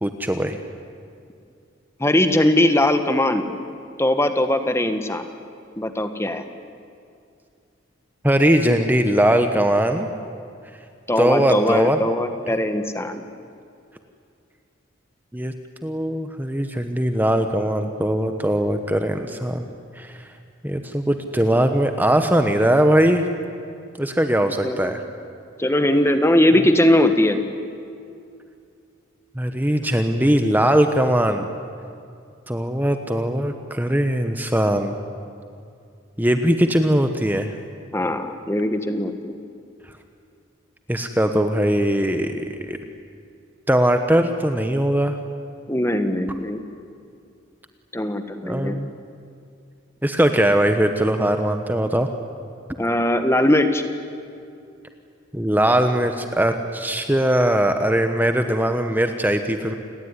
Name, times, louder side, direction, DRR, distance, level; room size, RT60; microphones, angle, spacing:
voice 1, 0.0-0.6 8.2-10.1 11.2-12.0 15.3-15.5 15.8-19.7 20.0-20.2 20.6-23.2 24.0-25.0 29.4-31.5 32.5-35.0 36.2-37.5 40.9-42.8 43.7-45.2 48.4-48.9 50.0-52.1 55.3-59.8, right 1 dB, 10° right, 7 dB, 1.1 m, -20 dB
voice 2, 2.0-3.5 4.0-5.3 5.8-6.4 11.1-13.2 24.6-24.9 25.6-27.4 37.9-39.3 45.7-46.6 47.9-48.8 52.8-53.8, left 1 dB, 15° left, 8 dB, 1.4 m, -20 dB
29.0 x 20.0 x 9.7 m, 2.4 s
head